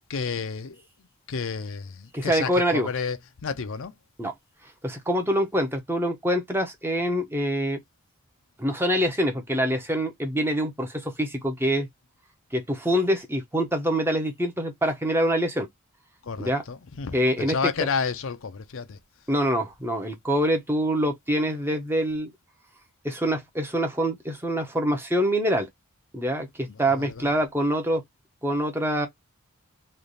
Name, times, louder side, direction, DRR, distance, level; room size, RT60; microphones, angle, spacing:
voice 1, 0.1-0.8 1.3-3.9 16.2-19.0 26.7-27.3, left 5 dB, 60° left, 0.5 m, -31 dB
voice 2, 2.1-2.9 4.2-4.3 4.8-7.8 8.6-11.9 12.5-15.7 16.4-16.6 17.1-17.6 19.3-22.3 23.0-25.7 26.1-28.0 28.4-29.1, equal, 10° right, 0.9 m, -25 dB
3.2 x 2.6 x 3.9 m
head